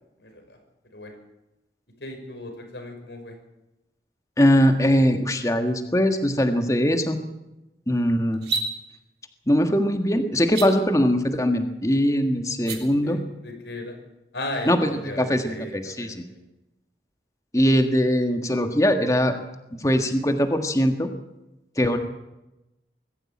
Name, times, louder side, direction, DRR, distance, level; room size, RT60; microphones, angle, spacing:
voice 1, 0.2-0.6 0.9-1.1 2.0-3.4 12.7-14.0 14.3-16.4, left 1 dB, 80° left, 4 dB, 5.8 m, -36 dB
voice 2, 4.4-7.2 7.9-8.4 9.5-13.2 14.7-14.9 15.2-16.1 17.5-19.4 19.8-21.1 21.7-22.0, equal, 20° left, 6 dB, 1.7 m, -21 dB
sound 1, 8.3-8.7 10.4-10.7 12.5-12.8, right 4 dB, 70° right, 3.5 m, -27 dB
21.5 x 14.5 x 8.7 m, 0.96 s
head